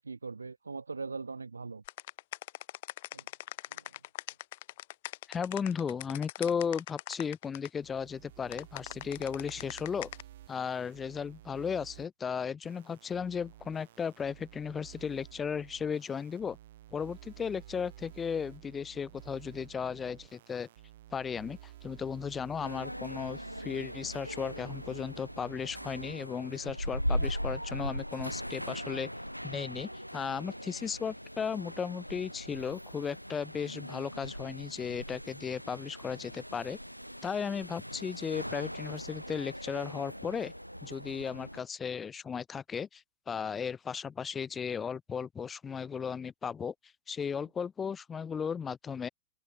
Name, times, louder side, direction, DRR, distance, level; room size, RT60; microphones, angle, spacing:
voice 1, 0.0-1.8 3.1-3.3 3.7-3.9, right 4 dB, 75° right, 0.6 m, -41 dB
sound 1, 1.9-7.7 8.5-10.2, left 17 dB, 55° left, 0.8 m, -41 dB
voice 2, 5.3-10.1 10.5-16.6 16.9-20.7 21.1-29.1 29.4-36.8 37.2-40.5 40.8-46.7 47.1-49.1, left 6 dB, 20° left, 1.0 m, -35 dB
sound 2, 7.8-12.1 12.6-26.1, right 13 dB, 60° right, 1.9 m, -52 dB
sound 3, 22.6-41.6, equal, 90° left, 0.3 m, -40 dB
figure-of-eight pair, 90°, 0 cm